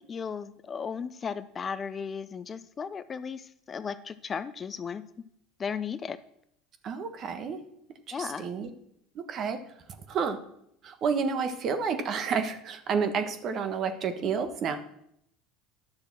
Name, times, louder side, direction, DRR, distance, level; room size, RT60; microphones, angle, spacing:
voice 1, 0.1-5.0 5.6-6.2 8.1-8.5, left 6 dB, 30° left, 13 dB, 0.6 m, -35 dB
voice 2, 6.8-7.6 8.1-8.7 9.1-9.6 10.1-10.4 10.8-14.8, right 6 dB, 50° right, 8 dB, 1.3 m, -30 dB
10.5 x 6.8 x 6.0 m, 0.74 s
supercardioid pair, 95°, 0 cm